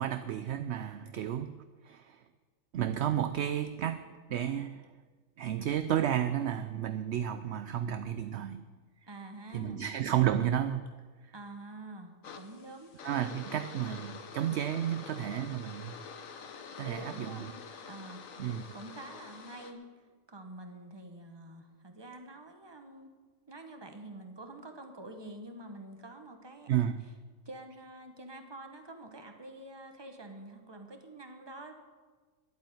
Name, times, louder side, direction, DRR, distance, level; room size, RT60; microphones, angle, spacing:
voice 1, 0.0-2.2 2.7-4.9 5.4-8.6 9.5-10.9 13.0-15.9 16.8-17.4 18.4-18.6 26.7-27.0, right 10 dB, 65° right, 11 dB, 0.8 m, -32 dB
voice 2, 9.1-9.8 11.3-12.9 16.8-17.5 17.9-18.3 18.7-23.1 23.5-26.9 27.4-31.7, right 2 dB, 20° right, 5 dB, 1.3 m, -47 dB
sound 1, 12.2-19.7, left 6 dB, 75° left, 1.4 m, -47 dB
11.0 x 8.7 x 9.3 m, 1.5 s
omnidirectional pair, 1.4 m